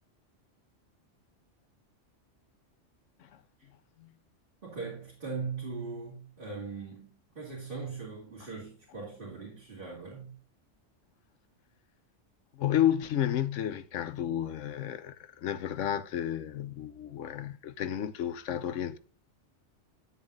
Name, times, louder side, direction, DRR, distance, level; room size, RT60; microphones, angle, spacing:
voice 1, 4.6-10.4, right 4 dB, 45° right, 2.8 m, -40 dB
voice 2, 12.5-19.0, left 11 dB, 85° left, 1.0 m, -31 dB
9.7 x 9.0 x 2.5 m
omnidirectional pair, 1.3 m